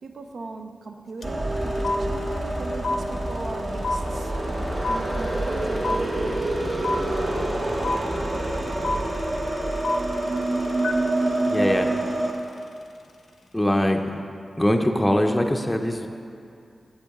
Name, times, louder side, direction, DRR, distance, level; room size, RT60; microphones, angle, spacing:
voice 1, 0.0-4.3 4.9-6.7, right 3 dB, 80° right, 4 dB, 0.5 m, -38 dB
sound 1, 1.2-1.3 1.5-12.7, left 3 dB, 75° left, 0.5 m, -31 dB
sound 2, 1.2-12.3, right 1 dB, 45° right, 0.9 m, -26 dB
voice 2, 11.5-11.9 13.5-14.2 14.6-16.1, left 1 dB, 10° left, 3 dB, 0.5 m, -22 dB
8.2 x 8.1 x 3.5 m, 2.4 s
wide cardioid pair, 80°, 0 cm